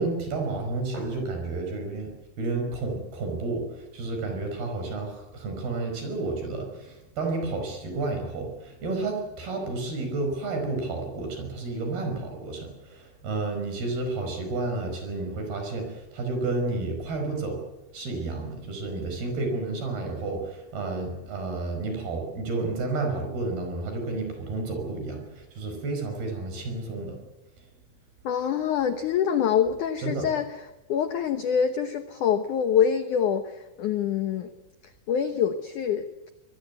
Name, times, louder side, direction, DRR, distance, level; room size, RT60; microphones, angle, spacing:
voice 1, 0.0-17.6 17.9-27.2 30.0-30.3, right 3 dB, 55° right, 4 dB, 6.9 m, -31 dB
voice 2, 28.2-34.5 34.8-36.3, left 8 dB, 85° left, 9 dB, 1.7 m, -26 dB
25.0 x 20.0 x 8.2 m, 1.0 s
omnidirectional pair, 5.3 m